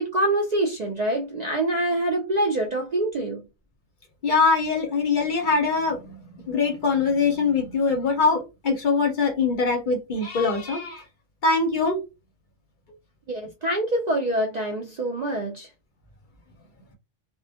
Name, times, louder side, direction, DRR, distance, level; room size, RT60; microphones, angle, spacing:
voice 1, 0.0-3.4 13.3-15.7, right 1 dB, 55° right, 0.4 m, -25 dB
voice 2, 4.2-6.2 6.5-11.0 11.4-12.0, left 4 dB, 50° left, 0.7 m, -23 dB
2.2 x 2.1 x 2.7 m
omnidirectional pair, 1.2 m